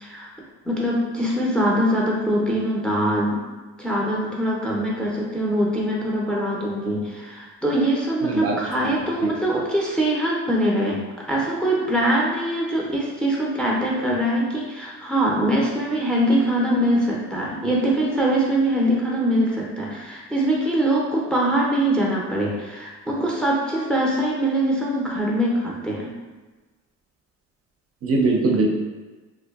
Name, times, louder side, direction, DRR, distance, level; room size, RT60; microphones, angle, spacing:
voice 1, 0.6-3.4 3.8-11.0 11.3-26.1, right 1 dB, 5° left, -4 dB, 0.5 m, -23 dB
voice 2, 8.2-8.6 8.8-8.9 9.2-9.3 28.0-28.7, right 3 dB, 50° right, 0 dB, 0.5 m, -21 dB
2.6 x 2.2 x 2.2 m, 1.3 s
cardioid pair, 90°, 30 cm